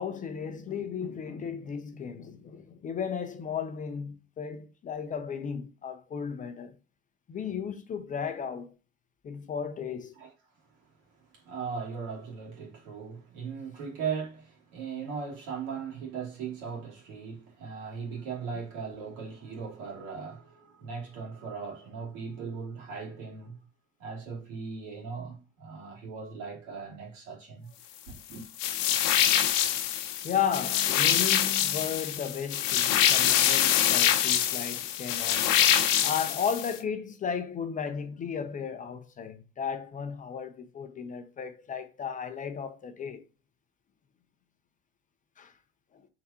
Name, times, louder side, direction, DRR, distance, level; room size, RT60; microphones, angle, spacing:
voice 1, 0.0-6.7 7.3-8.7 9.2-10.1 30.2-35.5 35.8-43.2 45.4-45.5, left 7 dB, 25° left, 0.5 m, -34 dB
voice 2, 11.3-23.6 24.0-27.7 28.1-28.5, right 5 dB, 70° right, 2.6 m, -38 dB
sound 1, 28.6-36.8, left 10 dB, 70° left, 0.8 m, -25 dB
4.7 x 3.5 x 2.8 m
supercardioid pair, 115°, 29 cm